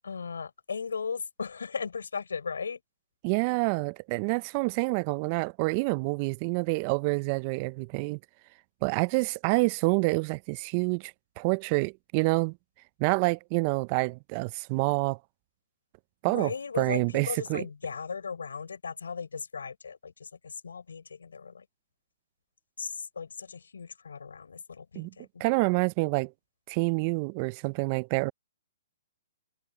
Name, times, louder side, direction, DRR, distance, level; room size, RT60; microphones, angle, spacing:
voice 1, 0.0-2.8 16.3-21.7 22.8-25.4, left 5 dB, 90° left, 3.9 m, -37 dB
voice 2, 3.2-8.2 8.8-12.6 13.0-15.2 16.2-16.5 16.8-17.6 25.0-25.1 25.4-26.3 26.7-28.3, right 28 dB, 35° right, 0.4 m, -27 dB
hypercardioid pair, 140°, 0 cm